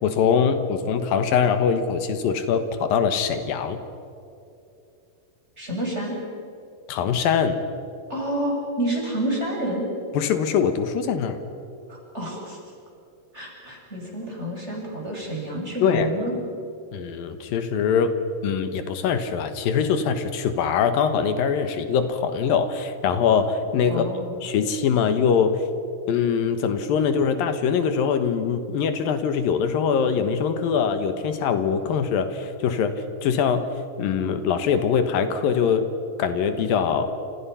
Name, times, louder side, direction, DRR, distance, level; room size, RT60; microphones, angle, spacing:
voice 1, 0.0-3.8 6.9-7.6 10.1-11.4 15.8-16.1 16.9-18.1 18.4-24.1 24.4-25.6 26.1-33.7 34.0-35.9 36.2-37.1, left 7 dB, 80° left, 9 dB, 3.1 m, -23 dB
voice 2, 5.6-6.2 8.1-9.9 11.9-12.6 13.3-16.3 23.9-24.4, right 1 dB, 15° right, -1 dB, 6.5 m, -29 dB
29.5 x 28.0 x 5.7 m, 2.7 s
omnidirectional pair, 4.0 m